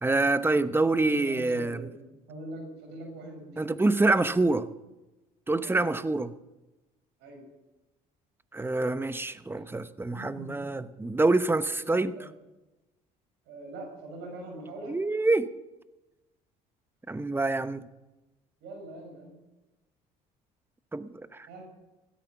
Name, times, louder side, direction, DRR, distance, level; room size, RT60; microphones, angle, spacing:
voice 1, 0.0-1.9 3.6-4.7 5.5-6.3 8.5-12.3 14.9-15.5 17.1-17.8 20.9-21.5, right 2 dB, 10° right, 13 dB, 0.9 m, -26 dB
voice 2, 1.0-3.7 5.6-5.8 7.2-7.5 10.1-10.6 11.9-12.3 13.4-15.0 18.6-19.3 21.5-21.7, right 1 dB, 75° right, 2 dB, 6.1 m, -43 dB
16.0 x 13.0 x 5.9 m, 1.1 s
supercardioid pair, 70°, 18 cm